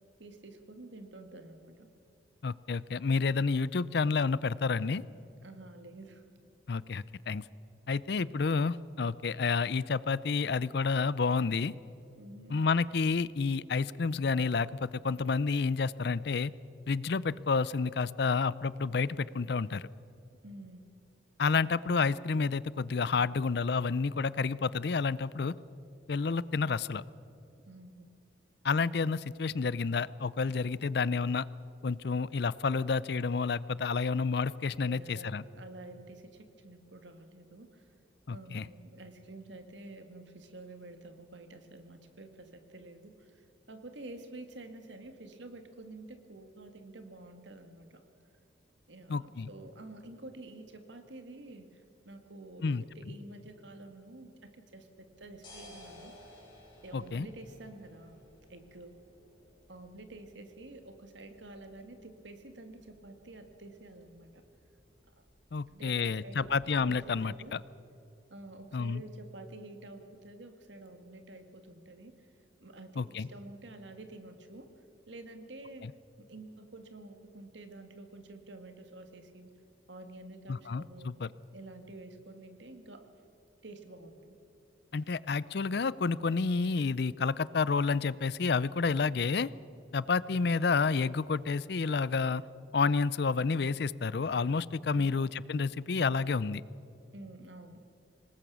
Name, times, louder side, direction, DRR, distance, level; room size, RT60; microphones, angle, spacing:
voice 1, 0.2-1.9 5.4-6.2 12.2-12.6 20.4-20.9 27.7-28.1 34.8-37.9 38.3-48.0 48.9-56.4 56.8-58.2 58.5-59.0 59.7-64.4 65.7-66.5 66.8-67.0 67.2-67.6 68.3-72.3 72.6-74.7 75.1-75.9 76.2-79.5 79.9-81.1 81.5-83.1 83.6-84.4 97.1-97.9, right 2 dB, 75° right, 7 dB, 2.0 m, -49 dB
voice 2, 2.4-5.0 6.7-7.4 7.9-11.7 12.5-16.5 16.9-19.9 21.4-25.5 26.1-27.0 28.6-31.5 31.8-35.4 38.3-38.7 49.1-49.5 52.6-52.8 56.9-57.3 65.5-67.6 68.7-69.0 73.0-73.3 75.8-75.9 80.5-81.3 84.9-89.5 89.9-92.4 92.7-96.6, left 4 dB, 60° left, 19 dB, 0.5 m, -30 dB
sound 1, 55.0-67.1, left 1 dB, 25° left, 6.7 m, -58 dB
25.5 x 19.5 x 6.2 m, 2.7 s
head